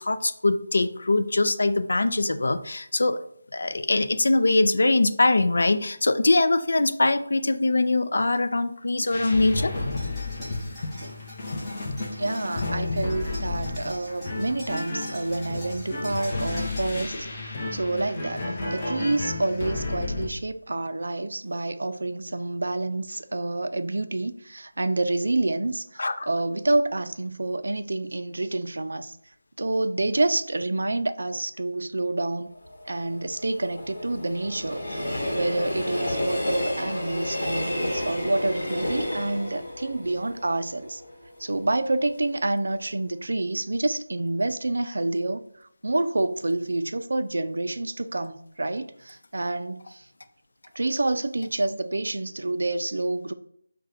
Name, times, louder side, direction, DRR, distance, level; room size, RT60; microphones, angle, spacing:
voice 1, 0.0-3.2 3.5-9.7 26.0-26.3, left 2 dB, 65° left, 0.5 m, -22 dB
sound 1, 9.0-16.9, equal, 5° left, 1.8 m, -45 dB
sound 2, 9.1-20.3, left 2 dB, 30° left, 0.8 m, -32 dB
voice 2, 12.2-29.2 29.6-32.5 32.9-41.0 41.4-50.1 50.8-53.3, right 2 dB, 70° right, 0.4 m, -28 dB
Train, 32.6-41.6 42.0-42.1, left 1 dB, 50° left, 1.5 m, -31 dB
4.9 x 2.2 x 4.1 m
figure-of-eight pair, 170°, 0 cm